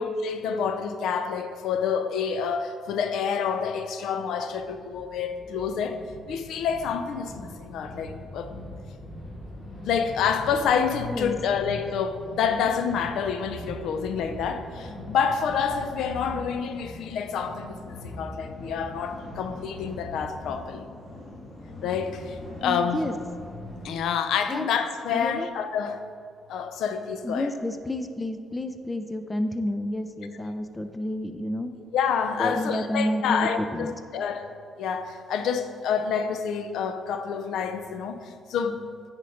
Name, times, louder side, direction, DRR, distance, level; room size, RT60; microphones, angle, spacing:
voice 1, 0.0-8.5 9.8-20.9 21.8-23.0 23.8-26.0 26.5-27.5 31.9-34.5 34.8-38.9, left 6 dB, 80° left, 8 dB, 0.5 m, -28 dB
sound 1, 4.5-23.9, left 1 dB, 35° left, 2.1 m, -41 dB
voice 2, 22.6-23.1 24.5-24.7 25.1-25.5 27.2-31.7 32.4-33.9, left 1 dB, 15° left, 8 dB, 0.5 m, -30 dB
9.3 x 4.5 x 5.0 m, 2.1 s
cardioid pair, 90°, 0 cm